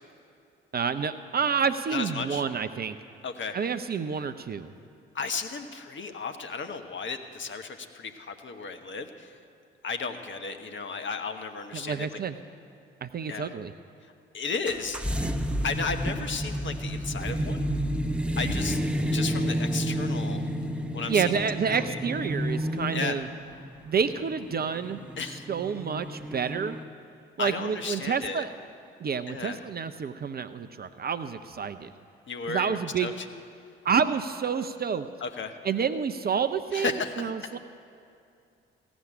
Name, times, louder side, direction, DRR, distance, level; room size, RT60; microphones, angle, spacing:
voice 1, 0.7-3.0 3.5-4.7 11.7-12.4 13.0-13.7 21.1-23.3 23.9-25.0 25.5-26.8 27.4-28.5 29.0-31.9 32.5-33.1 33.8-35.1 35.6-37.6, right 6 dB, 30° right, 9 dB, 0.6 m, -29 dB
voice 2, 1.9-2.4 3.2-3.7 5.1-9.4 9.8-12.1 13.3-13.5 14.3-15.0 15.3-15.4 15.6-17.7 18.4-20.4 20.9-22.0 22.9-23.2 25.2-25.5 27.4-28.4 29.3-29.6 32.3-33.3 35.2-35.6 36.7-37.5, left 4 dB, 40° left, 6 dB, 1.2 m, -34 dB
sound 1, 14.7-26.8, equal, 5° right, 0.8 m, -31 dB
16.0 x 6.2 x 8.7 m, 2.5 s
figure-of-eight pair, 45°, 30 cm